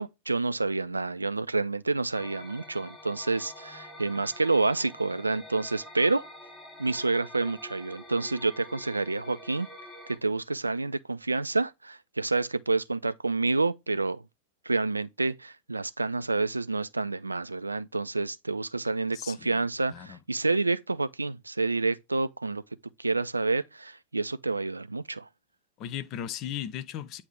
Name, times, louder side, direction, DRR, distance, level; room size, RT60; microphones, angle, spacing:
voice 1, 0.0-6.2 6.8-9.7 10.1-14.2 14.7-22.6 23.0-25.3, right 3 dB, 80° right, 0.3 m, -28 dB
sound 1, 2.1-10.2, left 1 dB, 10° left, 1.4 m, -47 dB
voice 2, 19.1-19.5 19.9-20.2 25.8-27.2, left 10 dB, 40° left, 0.6 m, -36 dB
8.2 x 2.8 x 4.9 m
figure-of-eight pair, 90°, 0 cm